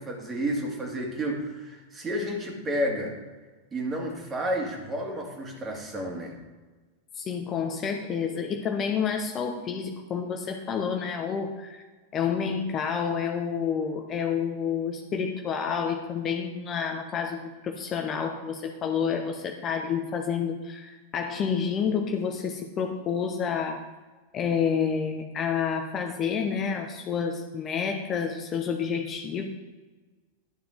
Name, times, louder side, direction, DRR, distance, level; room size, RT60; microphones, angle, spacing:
voice 1, 0.0-3.2 3.7-6.4, equal, 20° right, 1 dB, 2.3 m, -31 dB
voice 2, 7.2-11.8 12.1-23.8 24.3-29.4, left 6 dB, 30° left, 4 dB, 0.9 m, -29 dB
11.5 x 6.8 x 4.0 m, 1.3 s
figure-of-eight pair, 90°, 0 cm